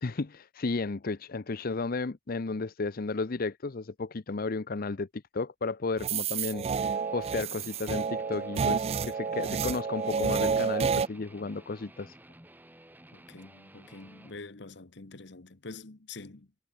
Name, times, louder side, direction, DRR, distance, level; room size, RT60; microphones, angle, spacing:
voice 1, 0.0-12.2, left 3 dB, 50° left, 0.7 m, -33 dB
sound 1, 6.0-11.1, right 6 dB, 35° right, 0.3 m, -29 dB
Guitar, 6.8-14.4, right 1 dB, 10° right, 4.8 m, -54 dB
voice 2, 13.1-16.5, left 3 dB, 65° left, 1.3 m, -46 dB
head